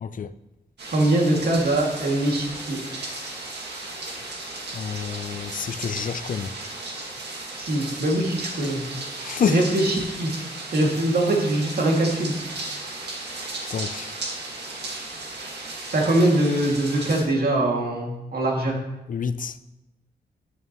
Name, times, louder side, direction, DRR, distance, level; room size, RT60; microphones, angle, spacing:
voice 1, 0.0-0.3 4.7-6.5 9.2-9.6 13.7-14.1 19.1-19.5, left 7 dB, 55° left, 0.5 m, -28 dB
sound 1, 0.8-17.2, right 2 dB, 85° right, 1.9 m, -35 dB
voice 2, 0.9-2.8 7.6-8.8 9.5-10.3 10.7-12.3 15.9-18.8, right 1 dB, 65° right, 2.4 m, -22 dB
11.0 x 9.5 x 3.1 m
cardioid pair, 80°, 17 cm